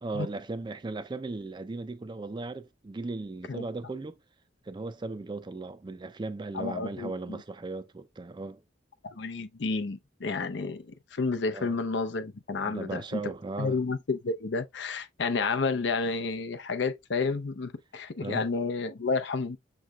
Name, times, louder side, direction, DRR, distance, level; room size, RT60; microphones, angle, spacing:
voice 1, 0.0-4.2 4.6-8.6 11.5-11.8 12.6-13.8 18.2-18.5, right 3 dB, 25° right, 0.4 m, -37 dB
voice 2, 6.5-7.4 9.0-13.2 13.6-19.6, left 4 dB, 70° left, 0.6 m, -31 dB
6.6 x 3.1 x 2.3 m
head